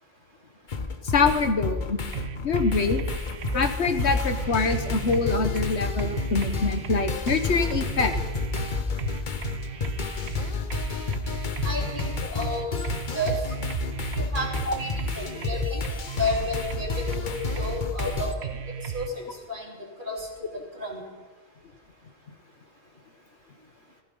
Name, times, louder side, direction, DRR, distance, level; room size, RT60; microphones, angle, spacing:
sound 1, 0.7-18.3, left 4 dB, 50° left, 1.1 m, -30 dB
voice 1, 1.0-2.0 2.4-3.0 3.5-8.1 14.7-14.8, left 4 dB, 85° left, 8 dB, 1.5 m, -24 dB
sound 2, 2.1-19.1, right 8 dB, 80° right, 1.1 m, -35 dB
voice 2, 11.6-12.7 13.1-13.4 14.1-15.8 16.1-18.5 18.8-20.3 20.5-21.0, left 1 dB, 50° right, -1 dB, 3.1 m, -32 dB
15.5 x 15.0 x 5.4 m, 1.4 s
omnidirectional pair, 1.1 m